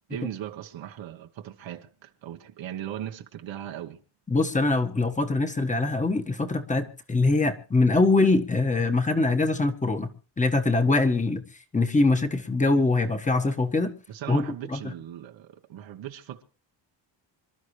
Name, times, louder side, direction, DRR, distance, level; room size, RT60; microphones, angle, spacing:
voice 1, 0.1-4.0 14.1-16.4, right 11 dB, 90° right, 1.2 m, -38 dB
voice 2, 4.3-10.1 10.4-11.4 11.7-13.9 14.3-14.8, left 3 dB, 15° left, 1.5 m, -23 dB
26.5 x 12.5 x 3.2 m
wide cardioid pair, 140°, 44 cm